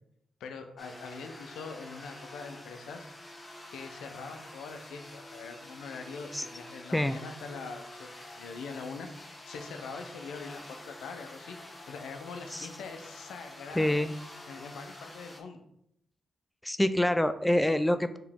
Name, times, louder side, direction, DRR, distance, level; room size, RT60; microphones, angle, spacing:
voice 1, 0.4-3.1 3.7-8.1 8.4-11.6 11.8-14.0 14.5-15.6, left 4 dB, 85° left, 6 dB, 0.5 m, -43 dB
sound 1, 0.8-15.4, left 1 dB, 25° left, 1.0 m, -48 dB
voice 2, 13.8-14.1 16.6-18.2, left 1 dB, 10° left, 11 dB, 0.3 m, -26 dB
4.7 x 3.1 x 3.5 m, 0.76 s
supercardioid pair, 55°, 0 cm